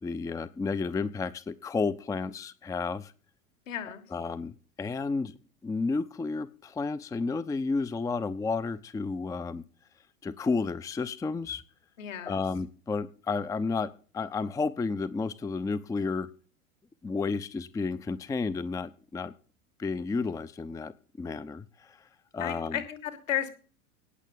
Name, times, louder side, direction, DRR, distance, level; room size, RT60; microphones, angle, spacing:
voice 1, 0.0-3.1 4.1-5.4 5.6-9.6 10.2-11.6 12.2-16.3 17.0-19.3 19.8-20.9 21.2-22.0 22.3-22.8, left 4 dB, 10° left, 16 dB, 0.6 m, -32 dB
voice 2, 3.7-4.0 12.0-12.4 22.4-23.5, left 11 dB, 65° left, 10 dB, 3.0 m, -33 dB
18.0 x 7.3 x 5.5 m, 0.38 s
figure-of-eight pair, 85°, 42 cm